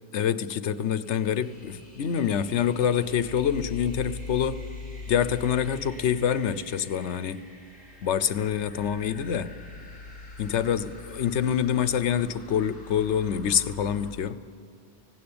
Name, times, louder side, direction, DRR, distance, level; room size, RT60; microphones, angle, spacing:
voice 1, 0.1-4.6 5.1-7.4 8.0-9.5 10.4-14.4, left 8 dB, 90° left, 14 dB, 1.1 m, -26 dB
sound 1, 0.7-14.1, left 1 dB, 20° left, 5.7 m, -52 dB
sound 2, 1.5-14.2, left 4 dB, 40° left, 0.8 m, -44 dB
19.0 x 17.0 x 8.7 m, 2.3 s
omnidirectional pair, 1.1 m